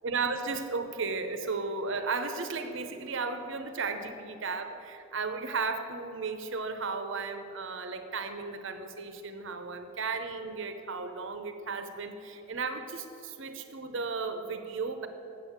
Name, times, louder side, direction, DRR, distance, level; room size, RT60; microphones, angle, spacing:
voice 1, 0.0-15.1, right 4 dB, 60° right, 8 dB, 0.8 m, -34 dB
8.2 x 7.6 x 7.3 m, 3.0 s
head